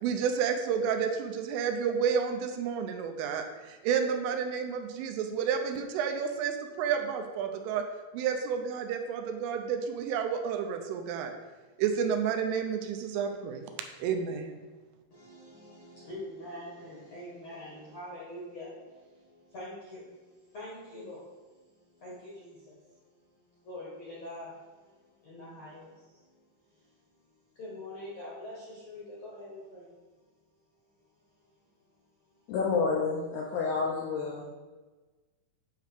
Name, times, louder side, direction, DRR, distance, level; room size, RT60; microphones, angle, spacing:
voice 1, 0.0-7.8 8.1-11.3 11.8-13.7 14.0-14.6, right 7 dB, 80° right, 5 dB, 3.2 m, -30 dB
voice 2, 15.1-26.3 26.7-26.9 27.2-29.9, left 1 dB, 55° left, -7 dB, 1.8 m, -45 dB
voice 3, 32.5-34.5, left 4 dB, 80° left, -3 dB, 2.4 m, -29 dB
9.2 x 3.6 x 6.5 m, 1.3 s
omnidirectional pair, 5.8 m